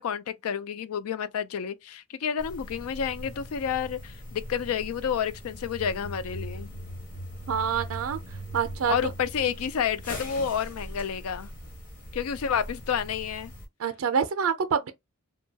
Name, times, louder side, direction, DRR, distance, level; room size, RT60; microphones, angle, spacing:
voice 1, 0.0-6.7 8.9-11.5 12.1-13.5, left 7 dB, 80° left, 0.4 m, -30 dB
sound 1, 2.4-13.7, equal, 40° left, 1.0 m, -40 dB
voice 2, 7.5-8.2 8.5-8.9 13.8-14.9, right 7 dB, 70° right, 0.4 m, -26 dB
2.7 x 2.2 x 2.7 m
head